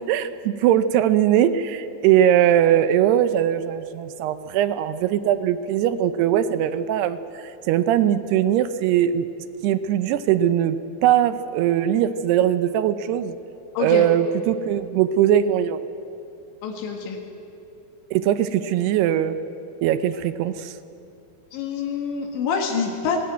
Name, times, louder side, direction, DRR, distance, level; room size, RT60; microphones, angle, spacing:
voice 1, 0.0-9.3 9.6-10.8 11.0-13.4 13.8-15.8 18.1-19.4 19.8-20.8, right 10 dB, 80° right, 11 dB, 2.6 m, -20 dB
voice 2, 13.8-14.1 16.6-17.2 21.5-23.2, left 6 dB, 85° left, 1 dB, 4.1 m, -26 dB
19.0 x 18.5 x 9.3 m, 2.6 s
omnidirectional pair, 5.1 m